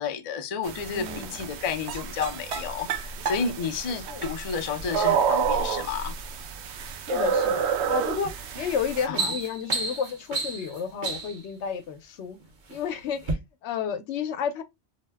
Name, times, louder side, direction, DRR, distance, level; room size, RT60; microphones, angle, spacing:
voice 1, 0.0-6.2 9.1-9.4, left 6 dB, 50° left, 0.4 m, -31 dB
sound 1, 0.6-9.1, right 7 dB, 80° right, 0.8 m, -29 dB
voice 2, 0.8-1.4 4.1-4.2 7.0-12.4 12.7-14.6, left 7 dB, 85° left, 0.9 m, -31 dB
sound 2, 8.2-8.5 8.8-11.5 12.3-12.8 13.2-13.3, right 3 dB, 50° right, 0.9 m, -31 dB
2.7 x 2.1 x 3.3 m
omnidirectional pair, 1.1 m